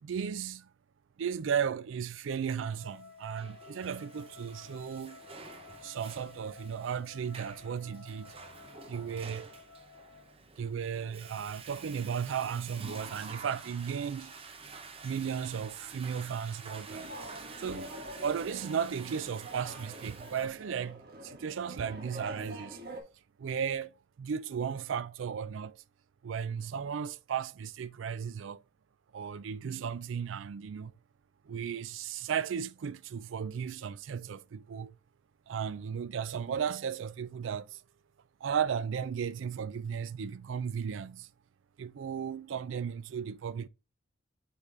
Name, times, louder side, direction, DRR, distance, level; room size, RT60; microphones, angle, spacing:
voice 1, 0.0-0.7 1.2-5.2 5.8-8.3 8.9-9.5 10.6-14.3 15.0-17.1 17.6-22.8 23.4-23.9 24.2-25.8 26.2-28.6 29.1-30.9 31.5-34.9 35.5-37.8 38.4-41.3 41.8-43.7, right 7 dB, 80° right, 0.4 m, -35 dB
Wind instrument woodwind instrument, 2.8-10.4, left 5 dB, 85° left, 1.1 m, -53 dB
Water / Toilet flush, 3.0-20.5, right 4 dB, 30° right, 0.7 m, -49 dB
sound 1, 16.9-23.0, right 1 dB, 55° right, 1.2 m, -45 dB
8.2 x 3.7 x 3.2 m
head